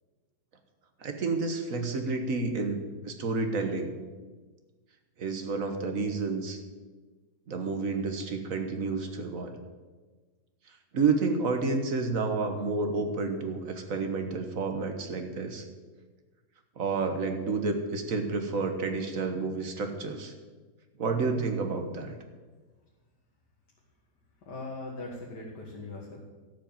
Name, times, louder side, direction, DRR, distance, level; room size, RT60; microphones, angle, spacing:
voice 1, 1.0-4.0 5.2-6.6 7.5-9.6 10.9-15.6 16.8-20.3 21.0-22.2, right 4 dB, 55° right, 6 dB, 1.7 m, -30 dB
voice 2, 24.5-26.2, left 2 dB, 90° left, -3 dB, 2.3 m, -40 dB
13.0 x 6.8 x 8.7 m, 1.4 s
omnidirectional pair, 1.8 m